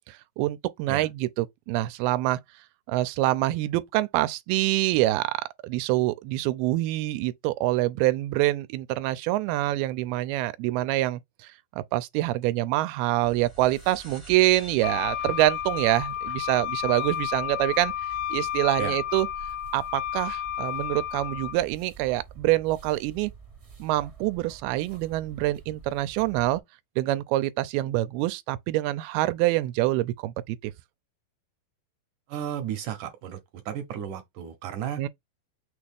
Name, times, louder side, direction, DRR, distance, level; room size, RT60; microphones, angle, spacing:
voice 1, 0.1-2.4 2.9-11.5 11.9-17.9 18.3-19.3 19.7-23.3 23.8-26.6 27.0-30.7 35.0-35.1, right 16 dB, 90° right, 2.5 m, -26 dB
sound 1, 13.2-18.1, left 1 dB, 20° left, 0.8 m, -52 dB
sound 2, 13.2-26.6, right 6 dB, 50° right, 0.7 m, -48 dB
Wind instrument woodwind instrument, 14.8-21.6, left 11 dB, 85° left, 2.0 m, -31 dB
voice 2, 32.3-33.4 33.7-35.0, right 9 dB, 70° right, 2.0 m, -33 dB
6.3 x 2.4 x 3.5 m
omnidirectional pair, 4.4 m